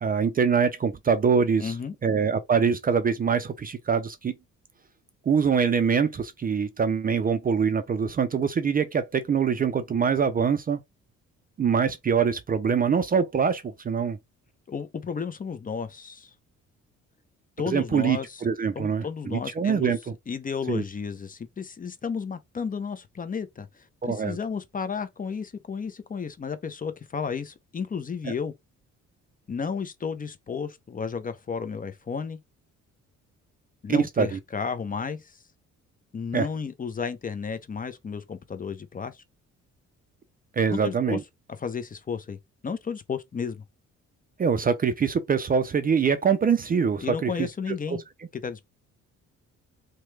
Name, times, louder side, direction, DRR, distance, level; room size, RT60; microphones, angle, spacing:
voice 1, 0.0-1.7 2.0-4.3 5.3-10.8 11.6-14.2 17.7-20.1 20.7-20.8 24.0-24.4 28.2-28.3 33.9-34.4 36.3-36.5 40.6-41.2 44.4-48.0, right 6 dB, 30° right, 0.4 m, -24 dB
voice 2, 1.6-1.9 14.7-16.3 17.6-18.4 18.7-19.9 20.3-28.5 29.5-32.4 33.8-35.4 36.1-39.2 40.7-41.2 41.6-42.4 42.6-43.6 47.0-48.0 48.4-48.6, left 6 dB, 30° left, 0.6 m, -33 dB
3.0 x 2.2 x 3.1 m
cardioid pair, 90°, 30 cm